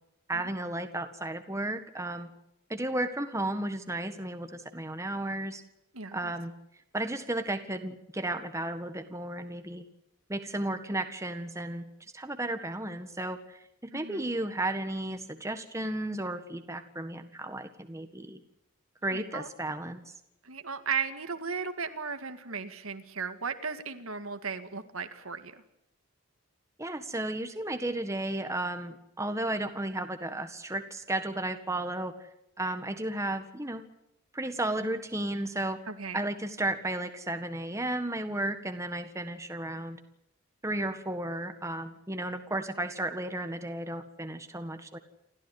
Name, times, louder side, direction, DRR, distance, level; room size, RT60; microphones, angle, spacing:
voice 1, 0.3-2.3 2.7-5.6 6.1-6.5 6.9-9.8 10.3-11.8 12.1-18.4 19.0-20.0 26.8-32.1 32.6-33.8 34.3-35.8 36.1-40.0 40.6-45.0, right 1 dB, 15° right, 7 dB, 1.7 m, -33 dB
voice 2, 5.9-6.3 13.9-14.3 19.1-19.5 20.4-25.6 35.9-36.2, right 5 dB, 75° right, 9 dB, 2.0 m, -36 dB
28.5 x 14.0 x 10.0 m, 0.81 s
head